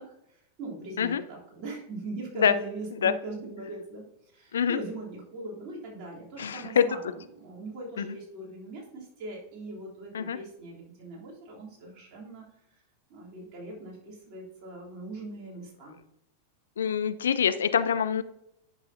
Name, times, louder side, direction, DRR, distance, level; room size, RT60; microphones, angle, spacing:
voice 1, 0.0-4.0 4.3-12.5 13.1-15.9, right 2 dB, 40° right, -4 dB, 3.3 m, -41 dB
voice 2, 6.4-6.8 8.0-8.2 10.1-10.4 16.8-18.2, left 8 dB, 65° left, 13 dB, 0.4 m, -25 dB
10.5 x 6.1 x 2.8 m, 0.82 s
figure-of-eight pair, 90°, 0 cm